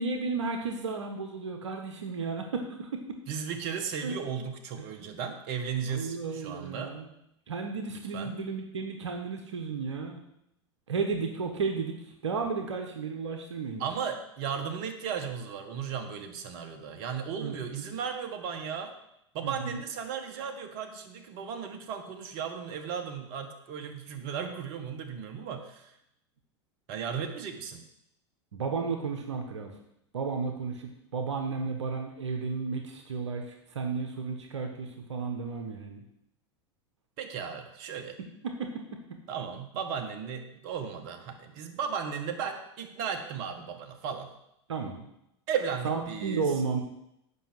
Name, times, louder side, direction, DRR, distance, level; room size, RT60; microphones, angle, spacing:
voice 1, 0.0-3.2 4.0-4.2 4.8-4.9 5.9-7.1 7.5-10.2 10.9-11.9 12.2-13.8 17.4-17.9 19.4-19.8 28.5-29.7 30.1-36.0 38.4-38.7 44.7-45.1 45.8-46.8, right 4 dB, 85° right, 4 dB, 1.3 m, -33 dB
voice 2, 3.3-7.0 7.9-8.3 13.8-19.0 19.3-25.9 26.9-27.8 37.2-38.2 39.3-44.3 45.5-46.5, right 7 dB, 55° right, 6 dB, 1.6 m, -35 dB
8.3 x 5.8 x 7.9 m, 0.80 s
hypercardioid pair, 90°, 15 cm